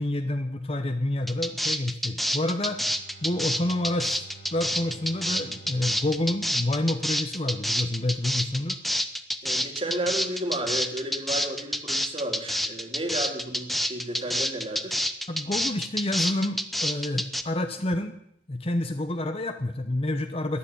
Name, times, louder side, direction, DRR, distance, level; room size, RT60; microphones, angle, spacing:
voice 1, 0.0-2.8 3.2-4.2 4.5-8.8 15.3-18.1 18.5-20.6, left 1 dB, 35° left, 7 dB, 0.9 m, -28 dB
sound 1, 1.3-17.4, equal, ahead, 0.8 m, -28 dB
Bowed string instrument, 2.5-7.5, right 3 dB, 55° left, 2.2 m, -50 dB
voice 2, 9.4-15.0, right 1 dB, 30° right, 5 dB, 2.4 m, -32 dB
13.0 x 10.5 x 8.6 m, 0.73 s
head